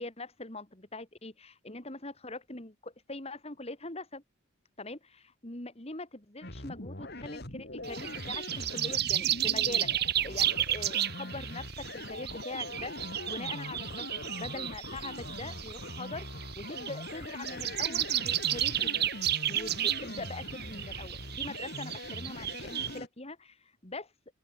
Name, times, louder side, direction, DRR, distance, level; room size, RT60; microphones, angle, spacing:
voice 1, 0.0-4.2 4.8-9.9 10.2-12.9 13.2-14.1 14.4-16.3 16.5-19.1 19.5-24.1, left 2 dB, 30° left, 2.8 m, -42 dB
sound 1, 6.4-23.1, left 1 dB, 50° left, 4.6 m, -42 dB
sound 2, 7.8-23.0, right 11 dB, 50° right, 1.2 m, -33 dB
open air
head